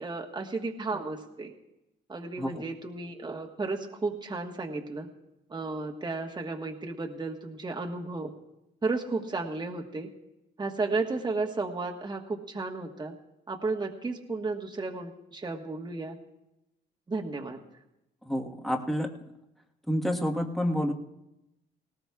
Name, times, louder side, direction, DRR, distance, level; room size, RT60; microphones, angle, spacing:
voice 1, 0.0-1.5 2.1-5.1 5.5-8.3 8.8-10.1 10.6-13.1 13.5-16.2 17.1-17.6, right 3 dB, 20° right, 1 dB, 1.4 m, -33 dB
voice 2, 18.2-19.1 19.9-20.9, equal, ahead, 1 dB, 1.4 m, -28 dB
19.0 x 18.5 x 2.4 m, 0.91 s
cardioid pair, 90°, 20 cm